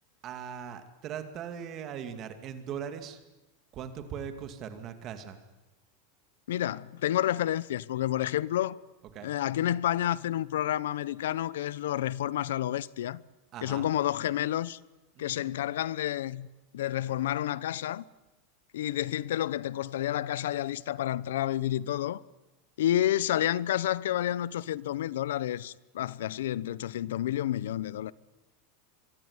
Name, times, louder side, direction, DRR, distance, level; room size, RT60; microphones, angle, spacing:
voice 1, 0.2-3.2 3.7-5.4 9.1-9.3 13.5-13.9 15.2-15.5, right 8 dB, 25° right, 2.3 m, -40 dB
voice 2, 6.5-8.8 9.2-13.2 13.6-14.8 15.2-16.5 16.7-18.0 18.7-22.2 22.8-28.1, left 12 dB, 85° left, 0.8 m, -30 dB
24.0 x 23.5 x 9.7 m
supercardioid pair, 180°, 0 cm